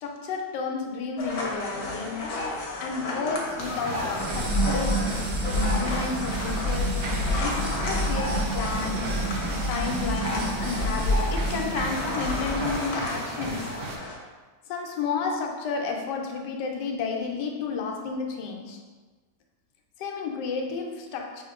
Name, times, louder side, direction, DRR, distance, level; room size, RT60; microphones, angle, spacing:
voice 1, 0.0-2.3 2.8-5.1 5.8-9.1 9.7-13.9 14.7-18.8 20.0-21.4, left 4 dB, 85° left, 2 dB, 1.2 m, -32 dB
sound 1, 1.2-14.2, left 2 dB, 65° left, 1.2 m, -34 dB
sound 2, 3.6-14.0, right 3 dB, 80° right, 0.5 m, -35 dB
sound 3, 4.1-12.8, equal, 60° right, 1.6 m, -28 dB
5.1 x 3.5 x 2.3 m, 1.3 s
omnidirectional pair, 1.8 m